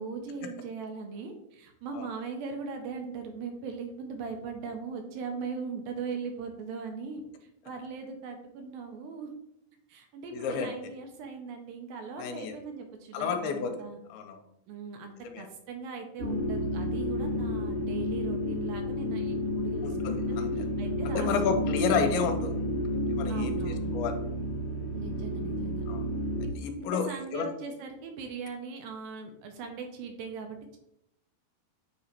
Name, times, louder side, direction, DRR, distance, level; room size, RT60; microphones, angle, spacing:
voice 1, 0.0-7.2 7.7-9.4 9.9-14.0 14.7-20.0 20.3-22.1 23.3-23.9 24.9-25.8 26.8-30.8, right 5 dB, 80° right, 4 dB, 2.2 m, -39 dB
voice 2, 10.3-10.7 12.2-12.6 13.1-14.4 15.2-15.5 19.8-20.7 21.1-22.6 23.1-24.1 25.9-26.0 26.6-27.5, left 6 dB, 85° left, 5 dB, 2.5 m, -31 dB
sound 1, 16.2-26.5, left 1 dB, 50° right, 0.8 m, -31 dB
8.2 x 2.9 x 4.3 m, 0.80 s
omnidirectional pair, 4.5 m